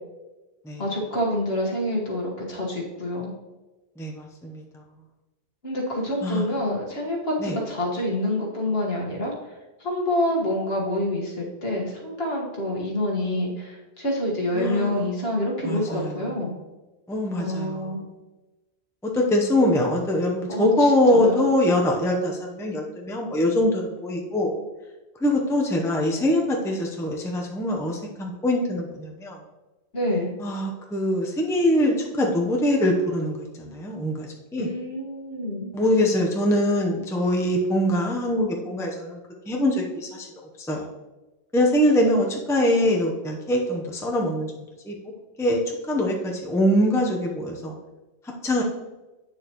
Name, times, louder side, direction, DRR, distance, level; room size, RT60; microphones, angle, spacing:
voice 1, 0.8-3.3 5.6-9.3 9.8-16.5 17.4-18.0 20.5-21.5 29.9-30.3 34.6-35.7, left 1 dB, 65° left, -2 dB, 1.8 m, -27 dB
voice 2, 4.0-4.6 6.2-6.4 7.4-7.6 14.5-15.1 15.6-16.4 17.1-17.9 19.0-24.6 25.2-29.4 30.4-34.7 35.7-39.2 39.5-40.3 40.7-40.8 41.5-44.5 44.8-44.9 45.4-45.6 45.9-47.7 48.4-48.6, left 1 dB, 5° left, 0 dB, 0.7 m, -23 dB
8.8 x 6.7 x 3.0 m, 1.1 s
omnidirectional pair, 1.1 m